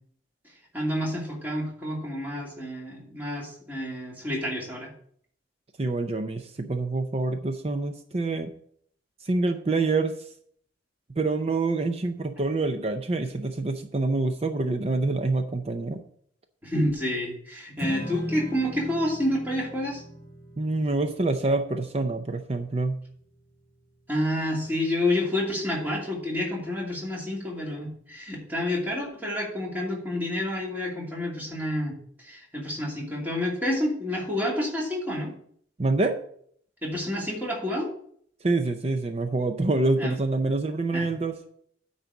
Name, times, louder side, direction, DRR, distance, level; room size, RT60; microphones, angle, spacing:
voice 1, 0.7-4.9 16.6-20.0 24.1-35.3 36.8-37.9 40.0-40.1 40.9-41.1, left 1 dB, 10° right, -3 dB, 2.5 m, -29 dB
voice 2, 5.8-8.5 9.2-10.1 11.2-16.0 20.6-23.0 35.8-36.2 38.4-41.4, right 3 dB, 30° right, 7 dB, 0.5 m, -26 dB
Strum, 17.8-24.1, equal, 55° right, 2.1 m, -39 dB
9.5 x 4.0 x 7.1 m, 0.63 s
head